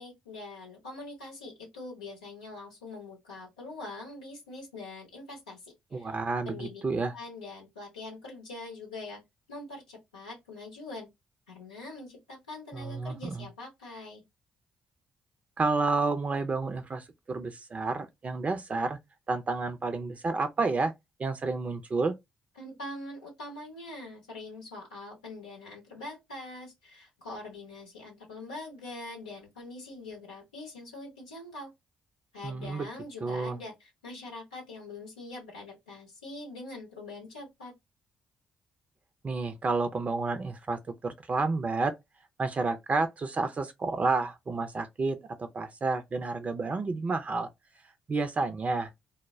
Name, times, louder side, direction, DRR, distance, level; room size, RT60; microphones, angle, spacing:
voice 1, 0.0-6.1 6.4-6.8 7.1-9.2 9.5-11.1 11.5-14.2 22.6-31.7 32.3-37.7, left 2 dB, 90° left, 0.7 m, -43 dB
voice 2, 5.9-7.1 12.7-13.5 15.6-19.0 19.3-20.9 21.2-22.1 32.4-32.9 33.2-33.6 39.2-41.9 42.4-47.5 48.1-48.9, right 3 dB, 40° right, 0.5 m, -30 dB
2.1 x 2.1 x 3.4 m
hypercardioid pair, 40°, 4 cm